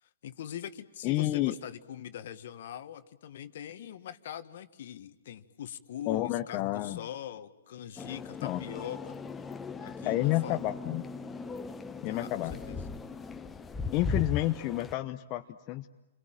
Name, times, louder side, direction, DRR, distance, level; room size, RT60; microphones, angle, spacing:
voice 1, 0.0-9.2 9.8-10.6 12.0-12.9, left 10 dB, 60° left, 12 dB, 1.6 m, -42 dB
voice 2, 1.0-1.5 6.1-7.0 8.4-8.6 10.0-11.0 12.0-12.5 13.9-15.9, left 16 dB, 35° left, 6 dB, 1.0 m, -30 dB
sound 1, 8.0-14.9, left 4 dB, 15° left, 1.2 m, -38 dB
28.5 x 22.5 x 9.0 m, 1.0 s
hypercardioid pair, 125°, 0 cm